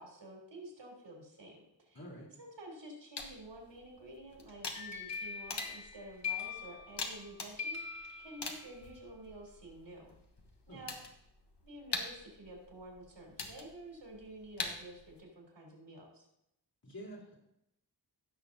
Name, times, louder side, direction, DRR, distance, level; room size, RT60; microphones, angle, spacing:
voice 1, 0.0-2.0 2.4-10.1 10.7-11.0 11.6-16.3, right 1 dB, 90° right, -2 dB, 3.4 m, -50 dB
voice 2, 1.9-2.3 10.7-10.8 16.8-17.4, equal, 55° left, -4 dB, 3.5 m, -48 dB
sound 1, 3.2-15.2, left 3 dB, 75° left, 1.3 m, -45 dB
sound 2, 4.5-7.3 7.6-8.9, left 6 dB, 40° left, 2.3 m, -42 dB
16.0 x 6.6 x 2.7 m, 0.81 s
wide cardioid pair, 85°, 42 cm